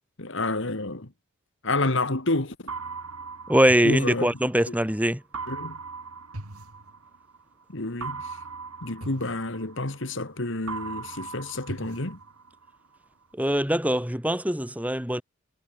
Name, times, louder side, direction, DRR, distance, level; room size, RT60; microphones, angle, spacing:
voice 1, 0.2-1.1 1.6-2.7 3.8-4.3 4.7-4.8 5.5-5.8 7.7-8.4 8.8-12.2, left 2 dB, 55° left, 2.1 m, -29 dB
sound 1, 2.7-4.7 5.3-7.4 8.0-10.3 10.7-12.7, right 4 dB, 90° right, 3.0 m, -39 dB
voice 2, 3.5-5.2 13.4-15.2, right 1 dB, 5° right, 2.8 m, -22 dB
head